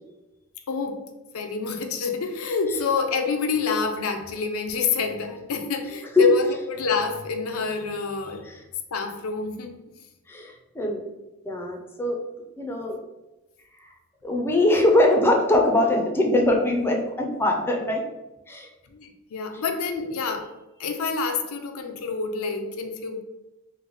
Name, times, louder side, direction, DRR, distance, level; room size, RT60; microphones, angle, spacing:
voice 1, 0.7-1.0 1.3-8.4 8.9-9.8 18.8-20.5 20.8-23.2, left 5 dB, 90° left, 5 dB, 0.4 m, -27 dB
voice 2, 10.3-11.0 11.5-12.2 12.6-13.0 14.2-18.0 18.5-18.7, left 1 dB, 10° left, 1 dB, 0.4 m, -22 dB
3.1 x 2.1 x 3.8 m, 1.0 s
head